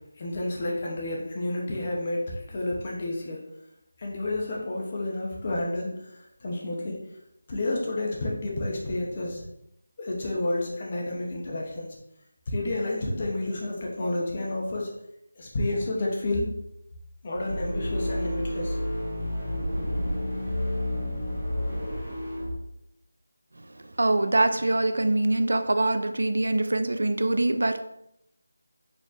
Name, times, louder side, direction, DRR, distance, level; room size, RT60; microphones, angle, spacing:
voice 1, 0.2-3.4 4.0-5.9 6.4-7.0 7.5-9.4 10.0-12.0 12.5-14.9 15.4-16.5 17.2-18.8, left 2 dB, 25° left, -1 dB, 0.6 m, -30 dB
sound 1, 17.3-22.6, left 1 dB, 5° right, 1.5 m, -30 dB
voice 2, 24.0-27.8, right 2 dB, 80° right, 8 dB, 0.3 m, -24 dB
4.3 x 2.9 x 2.3 m, 0.80 s
figure-of-eight pair, 175°, 0 cm